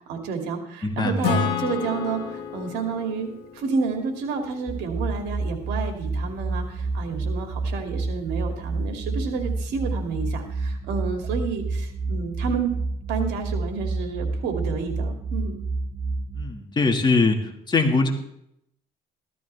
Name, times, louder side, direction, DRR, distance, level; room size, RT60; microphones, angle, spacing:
voice 1, 0.1-12.7 13.1-15.6, right 5 dB, 85° right, 4 dB, 2.6 m, -30 dB
voice 2, 0.8-1.3 16.4-18.1, left 3 dB, 25° left, 3 dB, 2.1 m, -22 dB
Acoustic guitar / Strum, 1.2-4.8, left 6 dB, 85° left, 1.7 m, -30 dB
sound 1, 4.7-16.4, right 3 dB, 30° right, 1.0 m, -29 dB
15.0 x 13.0 x 3.5 m, 0.74 s
cardioid pair, 110°, 17 cm